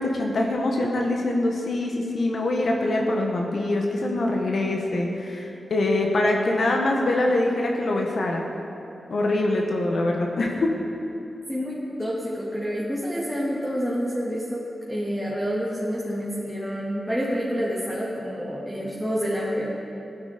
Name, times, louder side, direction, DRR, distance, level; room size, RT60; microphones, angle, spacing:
voice 1, 0.0-8.4 9.1-10.7, left 2 dB, 65° left, 1 dB, 1.4 m, -24 dB
voice 2, 11.5-19.7, equal, ahead, -7 dB, 2.5 m, -28 dB
16.5 x 12.5 x 5.2 m, 2.9 s
cardioid pair, 80°, 0 cm